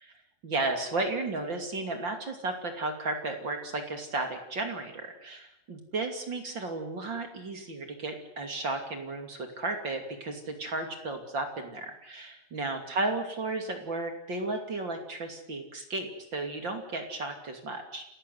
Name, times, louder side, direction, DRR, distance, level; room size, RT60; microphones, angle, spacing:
voice 1, 0.4-18.0, right 2 dB, 30° right, 5 dB, 2.6 m, -34 dB
29.0 x 14.5 x 9.4 m, 0.80 s
omnidirectional pair, 5.2 m